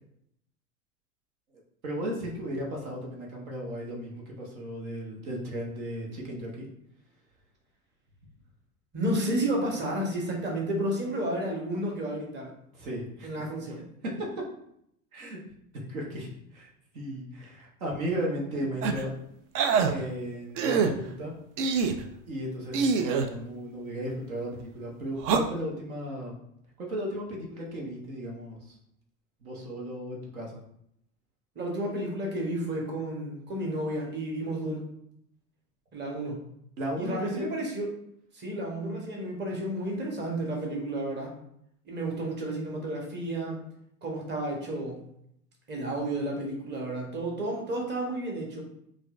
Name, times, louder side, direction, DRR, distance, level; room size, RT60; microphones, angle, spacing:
voice 1, 1.8-6.7 12.7-13.3 14.0-14.3 15.1-15.4 15.9-16.7 16.9-19.1 19.8-21.3 22.3-26.3 26.8-28.7 29.4-30.6 36.8-37.5, equal, 75° right, -1 dB, 1.1 m, -35 dB
voice 2, 8.9-12.5 13.2-13.8 31.5-34.9 35.9-36.4 37.0-37.9 38.3-41.3 41.9-43.6 44.0-45.0 45.7-48.6, right 1 dB, 25° right, -1 dB, 1.1 m, -31 dB
sound 1, 18.8-19.0 19.5-19.9 20.6-20.9 21.6-22.0 22.7-23.3 25.2-25.4, right 5 dB, 60° right, 0.5 m, -24 dB
4.1 x 2.4 x 2.4 m, 0.73 s
hypercardioid pair, 85°, 42 cm